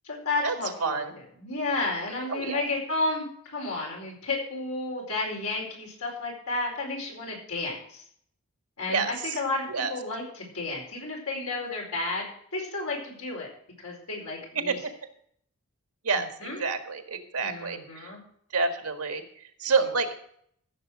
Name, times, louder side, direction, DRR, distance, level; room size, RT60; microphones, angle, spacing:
voice 1, 0.0-1.0 1.4-8.0 8.8-13.5 13.8-14.8 16.1-16.6 17.4-18.2, left 2 dB, 80° left, -1 dB, 4.7 m, -32 dB
voice 2, 0.8-1.1 2.3-2.6 8.9-9.3 9.7-9.9 14.6-14.9 16.0-18.1 18.5-19.2 19.6-20.1, right 4 dB, 90° right, 7 dB, 1.7 m, -28 dB
14.0 x 7.0 x 6.3 m, 0.65 s
head